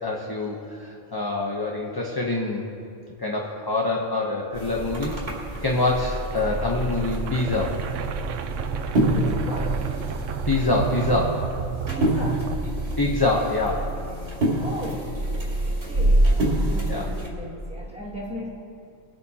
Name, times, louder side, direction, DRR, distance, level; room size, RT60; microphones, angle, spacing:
voice 1, 0.0-2.6 3.2-5.1 5.6-7.7 10.5-11.5 13.0-13.9 16.9-17.1, left 2 dB, 20° left, -1 dB, 0.8 m, -25 dB
sound 1, 4.5-17.3, right 1 dB, 55° right, 3.1 m, -26 dB
sound 2, 5.4-13.4, right 8 dB, 80° right, 1.0 m, -32 dB
voice 2, 9.0-9.8 11.9-12.5 14.6-15.2 15.6-16.4 16.6-18.5, equal, 5° right, -6 dB, 2.0 m, -37 dB
23.5 x 8.4 x 2.9 m, 2.6 s
omnidirectional pair, 1.3 m